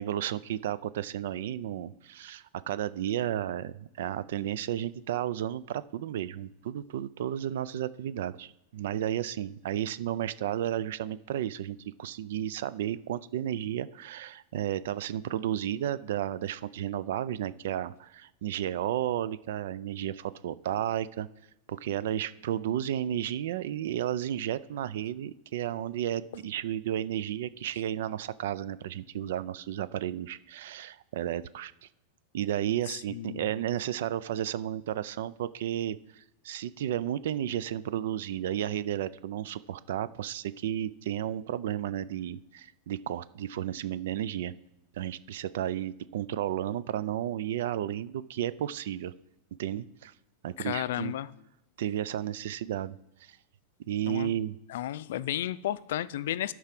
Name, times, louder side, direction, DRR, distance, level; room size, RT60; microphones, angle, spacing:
voice 1, 0.0-21.3 21.7-31.9 32.3-44.5 44.9-49.1 49.6-50.1 50.4-51.1 51.8-53.4 53.9-54.6, right 11 dB, 60° right, 17 dB, 0.4 m, -33 dB
voice 2, 32.9-33.5 50.6-51.3 54.1-54.3 54.7-56.5, left 12 dB, 60° left, 17 dB, 0.4 m, -33 dB
12.0 x 4.7 x 5.9 m, 0.89 s
supercardioid pair, 180°, 0 cm